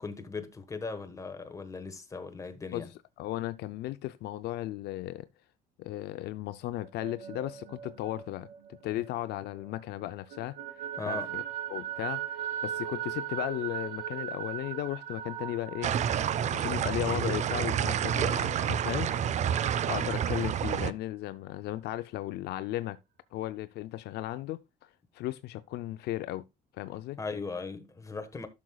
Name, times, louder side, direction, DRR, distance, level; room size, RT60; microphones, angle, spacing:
voice 1, 0.0-2.9 11.0-11.4 27.2-28.5, left 4 dB, 20° left, 1.2 m, -38 dB
voice 2, 3.2-5.3 5.8-8.5 8.8-11.4 11.7-15.9 16.3-19.5 19.9-23.0 23.3-24.9 25.1-26.5 26.7-27.2, left 15 dB, 75° left, 0.5 m, -36 dB
sound 1, 6.8-9.7 10.0-19.5, right 10 dB, 85° right, 1.0 m, -39 dB
sound 2, 15.8-20.9, right 9 dB, 45° right, 0.4 m, -29 dB
12.0 x 6.3 x 2.3 m
cardioid pair, 110°, 17 cm